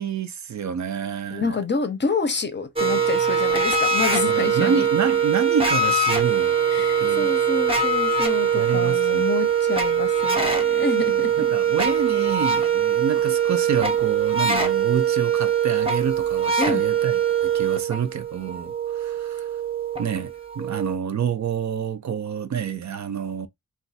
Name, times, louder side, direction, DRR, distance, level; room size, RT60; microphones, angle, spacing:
voice 1, 0.0-1.6 4.3-6.5 7.0-7.3 8.5-9.2 11.1-19.5 20.0-23.5, right 7 dB, 60° right, 0.5 m, -28 dB
voice 2, 1.3-4.9 6.7-11.5 16.6-16.8, left 4 dB, 35° left, 0.6 m, -28 dB
sound 1, 2.8-21.0, right 6 dB, 15° right, 0.6 m, -22 dB
2.4 x 2.2 x 4.0 m
wide cardioid pair, 140°, 33 cm